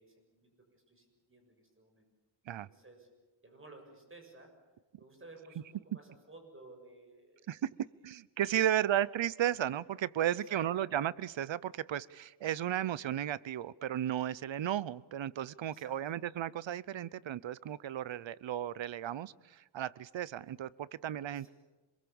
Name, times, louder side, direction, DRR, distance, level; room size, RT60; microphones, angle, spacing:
voice 1, 0.0-2.1 2.6-3.1 3.4-4.6 5.0-7.6 8.6-8.8 10.3-10.7 15.7-16.0 21.3-21.5, right 2 dB, 30° right, 4 dB, 7.0 m, -55 dB
voice 2, 8.0-21.5, right 11 dB, 85° right, 20 dB, 0.8 m, -34 dB
27.0 x 22.0 x 7.1 m, 1.2 s
wide cardioid pair, 95°, 44 cm